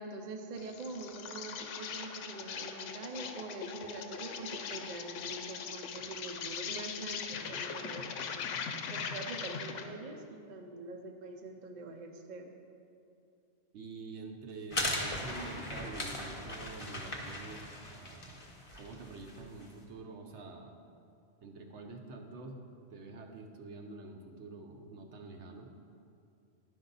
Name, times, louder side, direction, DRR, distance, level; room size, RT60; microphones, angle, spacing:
voice 1, 0.0-8.4 8.9-12.5, right 3 dB, 50° right, 3 dB, 0.6 m, -44 dB
Insect, 0.6-9.9, left 6 dB, 75° left, 0.9 m, -40 dB
voice 2, 13.7-18.4 18.7-20.7 21.4-22.6 22.9-25.7, right 3 dB, 65° right, 3 dB, 1.0 m, -47 dB
sound 1, 14.7-19.7, left 1 dB, 30° left, 0.9 m, -39 dB
11.0 x 5.4 x 3.9 m, 2.6 s
omnidirectional pair, 1.3 m